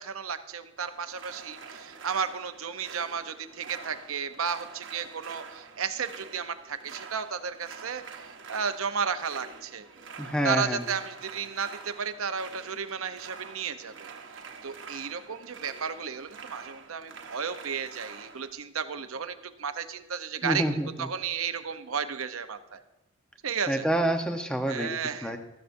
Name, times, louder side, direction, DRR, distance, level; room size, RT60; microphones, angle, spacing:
voice 1, 0.0-9.9 10.4-14.1 14.6-20.6 21.0-22.8 23.4-23.9 24.7-25.3, right 6 dB, 80° right, 9 dB, 0.7 m, -33 dB
sound 1, 0.8-18.5, right 5 dB, 60° right, 1.1 m, -46 dB
voice 2, 10.2-10.8 20.4-21.1 23.7-24.9 25.2-25.4, right 1 dB, 5° left, 5 dB, 0.8 m, -27 dB
15.0 x 13.0 x 2.6 m, 0.97 s
head